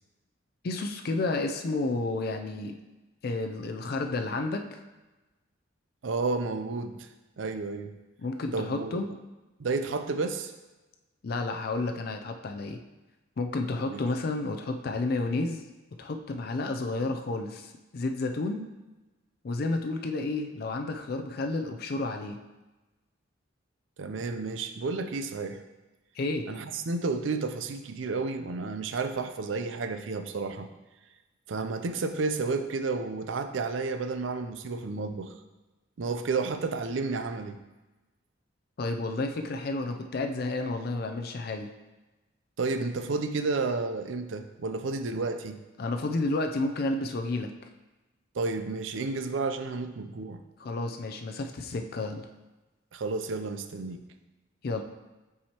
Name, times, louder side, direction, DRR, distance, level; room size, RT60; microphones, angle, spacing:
voice 1, 0.6-2.7 3.2-4.6 8.2-9.1 11.2-12.8 13.4-15.6 16.0-18.7 19.4-22.4 26.2-26.4 38.8-41.7 45.8-47.5 50.6-52.3 54.6-54.8, left 2 dB, 50° left, 5 dB, 0.4 m, -31 dB
voice 2, 6.0-7.1 7.4-7.9 8.5-9.2 9.6-10.5 13.9-14.0 24.0-25.6 26.5-30.7 31.5-35.3 36.0-37.6 42.6-45.6 48.3-50.4 52.9-54.0, right 3 dB, 75° right, 8 dB, 0.5 m, -31 dB
7.2 x 4.8 x 2.9 m, 1.1 s
head